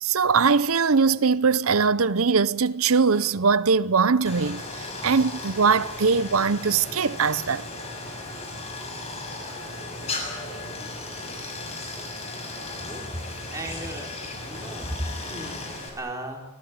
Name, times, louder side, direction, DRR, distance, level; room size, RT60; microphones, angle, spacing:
voice 1, 0.0-7.7, right 5 dB, 80° right, 0.8 m, -21 dB
Stream, 4.2-15.9, left 2 dB, 30° left, 6.4 m, -36 dB
voice 2, 12.7-16.4, right 1 dB, 15° right, 4.4 m, -36 dB
26.0 x 19.0 x 9.7 m
head